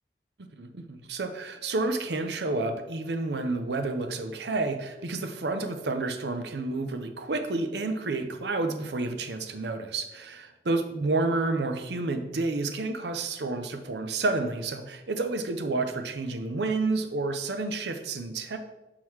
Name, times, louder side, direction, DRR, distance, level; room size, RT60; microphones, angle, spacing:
voice 1, 0.5-18.6, right 3 dB, 75° right, 7 dB, 0.6 m, -30 dB
6.3 x 3.8 x 4.5 m, 1.0 s
head